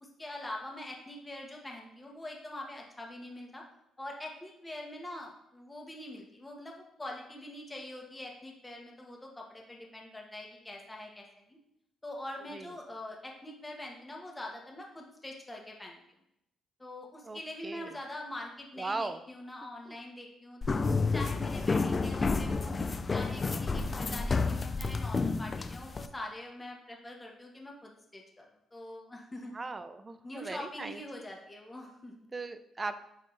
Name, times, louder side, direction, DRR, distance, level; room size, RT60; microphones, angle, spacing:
voice 1, 0.0-3.6 4.0-11.5 12.0-16.0 16.8-22.7 23.1-29.5 30.2-32.3, left 1 dB, 15° left, 0 dB, 1.3 m, -44 dB
voice 2, 17.2-17.9 18.8-19.2 19.9-20.0 29.5-31.0 32.3-33.0, right 3 dB, 25° right, 11 dB, 0.5 m, -38 dB
sound 1, 20.6-26.1, left 4 dB, 30° left, 0.4 m, -30 dB
9.0 x 3.3 x 3.3 m, 0.81 s
cardioid pair, 90°, 0 cm